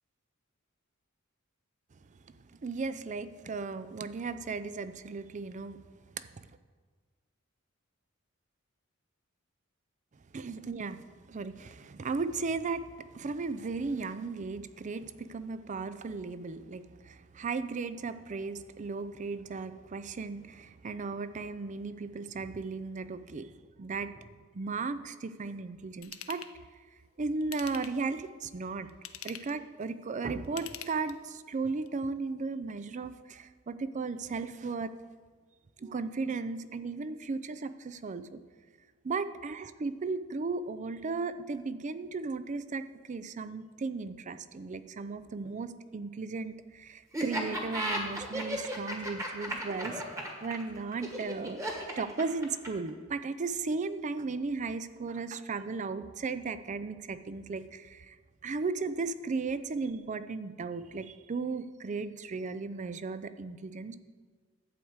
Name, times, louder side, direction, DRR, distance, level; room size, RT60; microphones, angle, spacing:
voice 1, 2.6-5.8 10.3-11.0 11.3-23.5 23.8-24.2 24.5-26.4 27.2-28.9 29.2-34.9 35.8-38.4 39.0-50.0 50.4-58.2 58.4-64.0, right 4 dB, 35° right, 12 dB, 0.4 m, -36 dB
Ratchet pawl / Tools, 26.0-26.5 27.4-28.1 28.9-29.6 30.4-31.4 31.9-32.0, left 10 dB, 75° left, 0.6 m, -44 dB
Laughter, 47.1-52.9, right 1 dB, 15° right, 1.5 m, -35 dB
11.0 x 4.7 x 8.0 m, 1.5 s
head